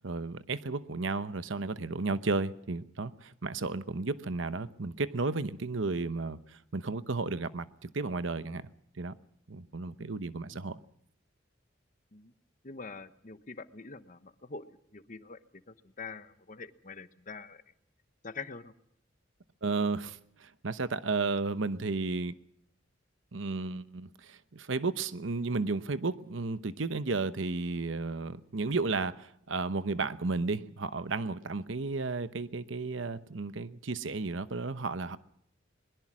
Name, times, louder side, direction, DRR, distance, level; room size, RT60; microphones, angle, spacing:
voice 1, 0.0-8.7 9.0-9.1 9.5-10.8 19.6-22.3 23.3-35.2, right 3 dB, 75° right, 0.9 m, -33 dB
voice 2, 12.6-17.6 18.2-18.7, left 4 dB, 40° left, 1.0 m, -45 dB
22.0 x 21.5 x 6.2 m
head